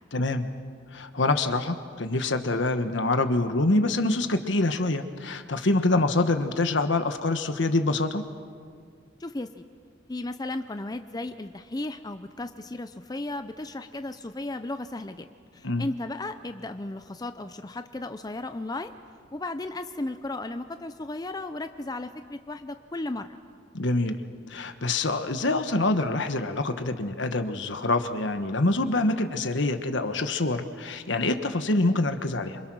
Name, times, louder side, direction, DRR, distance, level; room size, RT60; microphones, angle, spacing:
voice 1, 0.1-0.5 0.9-8.2 15.6-15.9 23.7-24.2 24.5-32.6, left 2 dB, 65° left, 8 dB, 1.3 m, -25 dB
voice 2, 9.2-9.6 10.1-15.3 15.5-18.9 19.3-23.3, left 2 dB, 20° left, 9 dB, 0.6 m, -35 dB
27.0 x 25.5 x 6.3 m, 2.1 s
head